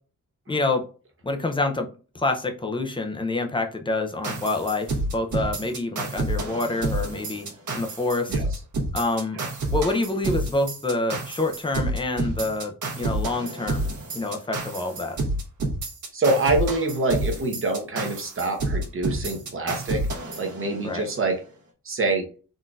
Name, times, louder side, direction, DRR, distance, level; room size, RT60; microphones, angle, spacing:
voice 1, 0.5-0.8 1.2-1.9 2.1-7.5 7.7-8.4 8.9-9.4 9.7-15.2 20.8-21.1, left 2 dB, 15° left, 4 dB, 0.4 m, -27 dB
sound 1, 4.2-21.1, right 2 dB, 65° right, 1.1 m, -29 dB
voice 2, 16.1-20.1 20.4-21.4 21.8-22.3, right 2 dB, 40° right, 3 dB, 0.8 m, -25 dB
3.8 x 2.6 x 2.3 m, 0.37 s
wide cardioid pair, 150°, 32 cm